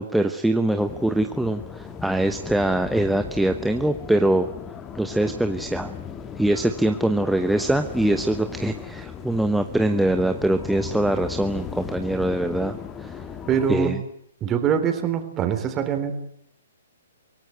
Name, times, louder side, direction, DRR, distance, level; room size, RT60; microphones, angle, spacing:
voice 1, 0.0-4.5 4.9-5.9 6.3-13.2 13.7-14.0, right 1 dB, ahead, 7 dB, 1.0 m, -23 dB
sound 1, 0.8-13.7, left 7 dB, 20° left, 1.8 m, -36 dB
voice 2, 13.5-14.0 14.4-16.1, right 7 dB, 20° right, 7 dB, 3.8 m, -23 dB
25.0 x 18.0 x 9.3 m, 0.71 s
hypercardioid pair, 130°, 0 cm